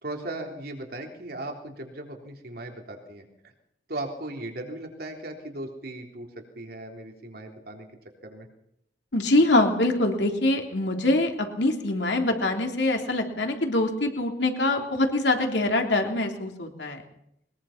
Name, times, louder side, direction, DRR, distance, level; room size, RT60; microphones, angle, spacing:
voice 1, 0.0-3.3 3.9-7.9 8.2-8.5, right 1 dB, 60° right, 2 dB, 3.6 m, -37 dB
voice 2, 9.1-17.0, left 2 dB, 75° left, 3 dB, 3.3 m, -24 dB
22.0 x 21.0 x 5.9 m, 0.78 s
head